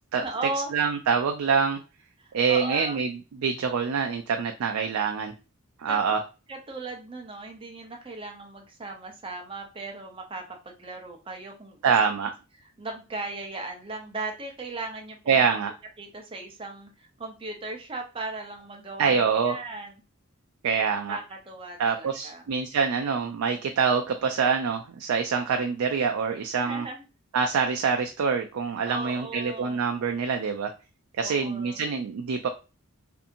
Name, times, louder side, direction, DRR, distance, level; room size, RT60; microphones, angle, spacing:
voice 1, 0.2-0.7 2.2-3.0 5.9-6.0 6.5-11.9 12.8-15.5 16.0-19.9 21.1-22.4 26.6-27.0 28.8-29.8 31.2-31.8, right 3 dB, 25° right, 2 dB, 0.6 m, -37 dB
voice 2, 0.7-1.8 2.3-5.3 5.8-6.2 11.8-12.3 15.3-15.7 19.0-19.6 20.6-21.2 21.8-26.9 27.3-30.7 31.2-32.5, right 6 dB, 80° right, 4 dB, 0.4 m, -25 dB
2.7 x 2.6 x 2.4 m, 0.31 s
head